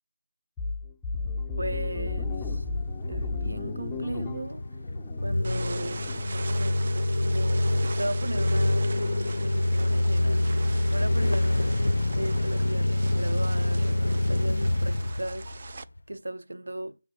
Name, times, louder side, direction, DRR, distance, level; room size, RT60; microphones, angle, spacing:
sound 1, 0.6-6.2, left 3 dB, 5° left, 0.5 m, -34 dB
sound 2, 1.6-16.0, left 1 dB, 60° left, 0.4 m, -27 dB
voice 1, 1.6-2.6 3.1-4.8 5.2-15.8 16.1-17.0, right 1 dB, 75° right, 0.7 m, -37 dB
sound 3, 5.4-15.8, right 4 dB, 40° right, 0.4 m, -42 dB
7.0 x 3.6 x 6.4 m
figure-of-eight pair, 165°, 0 cm